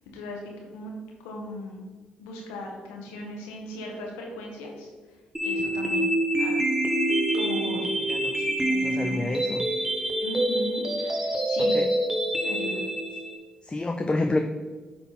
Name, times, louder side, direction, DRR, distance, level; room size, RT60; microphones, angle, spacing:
voice 1, 0.1-1.8 2.2-4.9 5.4-6.1 6.4-6.5 7.3-7.9 8.4-9.3 10.2-11.8 12.4-12.8, left 1 dB, 90° left, 0 dB, 1.2 m, -38 dB
sound 1, 5.3-13.3, right 1 dB, 10° right, 1.5 m, -26 dB
voice 2, 8.0-8.4 8.8-9.7 11.6-11.9 13.6-14.4, left 2 dB, 25° left, 4 dB, 0.6 m, -29 dB
9.0 x 3.8 x 4.1 m, 1.3 s
hypercardioid pair, 50°, 4 cm